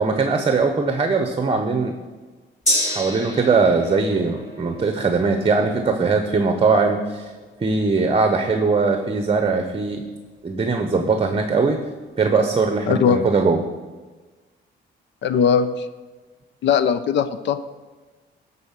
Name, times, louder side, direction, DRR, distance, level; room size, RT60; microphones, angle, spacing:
voice 1, 0.0-2.0 2.9-7.3 7.6-10.0 10.4-11.8 12.2-13.6, right 4 dB, 30° right, 6 dB, 0.9 m, -20 dB
Gong, 2.7-10.4 10.8-10.9, left 1 dB, 35° left, 3.7 m, -31 dB
voice 2, 12.9-13.2 15.2-15.9 16.6-17.6, left 7 dB, 65° left, 12 dB, 0.6 m, -19 dB
12.0 x 4.2 x 7.3 m, 1.3 s
cardioid pair, 90°, 20 cm